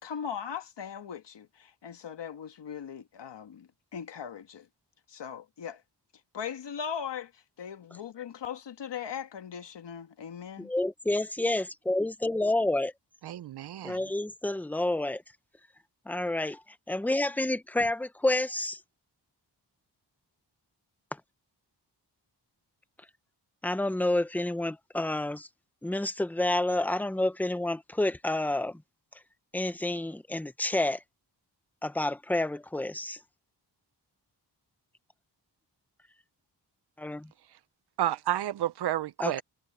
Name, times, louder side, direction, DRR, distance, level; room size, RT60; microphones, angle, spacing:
voice 1, 0.0-4.7 5.1-5.8 6.3-10.7, left 7 dB, 90° left, 1.5 m, -39 dB
voice 2, 10.6-12.9 13.8-15.2 16.1-16.6 16.9-18.8 23.6-25.5 25.8-28.8 29.5-31.0 31.8-33.2 37.0-37.3 39.2-39.4, left 1 dB, 5° left, 0.8 m, -29 dB
voice 3, 13.2-14.0 38.0-39.4, right 12 dB, 70° right, 0.5 m, -30 dB
wide cardioid pair, 140°, 41 cm